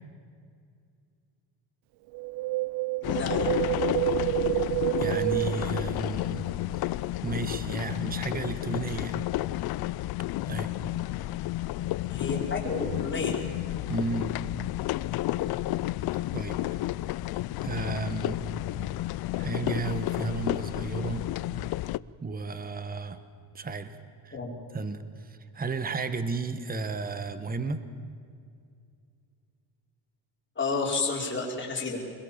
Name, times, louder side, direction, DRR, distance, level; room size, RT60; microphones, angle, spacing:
Wind, 2.1-6.5 6.7-6.8, right 19 dB, 60° right, 0.5 m, -29 dB
sound 1, 3.0-22.0, left 16 dB, 55° left, 0.5 m, -31 dB
voice 1, 3.0-3.5 12.1-13.4 24.3-24.5 30.6-32.0, left 4 dB, 25° left, -1 dB, 5.2 m, -31 dB
voice 2, 5.0-6.4 7.2-9.2 10.5-10.7 13.9-14.3 16.3-16.6 17.6-18.4 19.4-21.3 22.2-23.2 23.5-24.0 24.2-24.4 24.7-27.8, right 4 dB, 20° right, 11 dB, 1.3 m, -33 dB
25.5 x 22.0 x 7.4 m, 2.3 s
cardioid pair, 125°, 46 cm